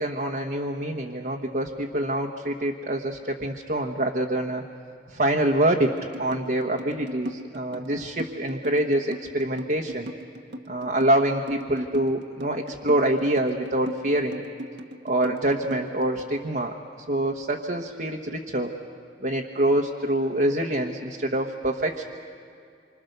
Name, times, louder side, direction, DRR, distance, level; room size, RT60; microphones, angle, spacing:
voice 1, 0.0-4.6 5.1-5.9 6.2-10.1 10.7-14.4 15.0-16.7 17.1-18.7 19.2-22.0, right 1 dB, 50° right, 0 dB, 1.2 m, -25 dB
sound 1, 5.8-16.4, equal, 80° right, 1.3 m, -38 dB
27.0 x 25.5 x 6.7 m, 2.4 s
head